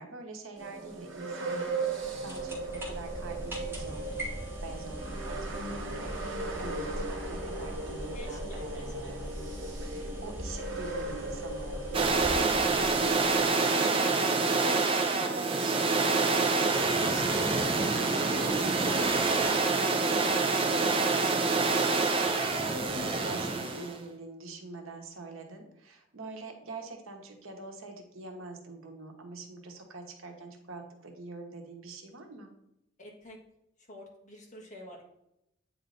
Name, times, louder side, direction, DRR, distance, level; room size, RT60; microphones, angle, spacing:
voice 1, 0.0-4.3 4.6-13.2 13.9-14.3 14.5-21.6 22.5-32.5, right 2 dB, 90° right, 3 dB, 1.0 m, -44 dB
sound 1, 0.6-12.5, right 3 dB, 65° right, 1.4 m, -37 dB
sound 2, 1.9-13.6, equal, 10° right, 1.2 m, -41 dB
voice 2, 8.1-9.2 33.0-33.4 33.9-35.0, left 1 dB, 35° left, -2 dB, 1.4 m, -48 dB
sound 3, 11.9-24.0, right 3 dB, 25° right, 0.6 m, -26 dB
8.3 x 3.1 x 3.9 m, 0.83 s
head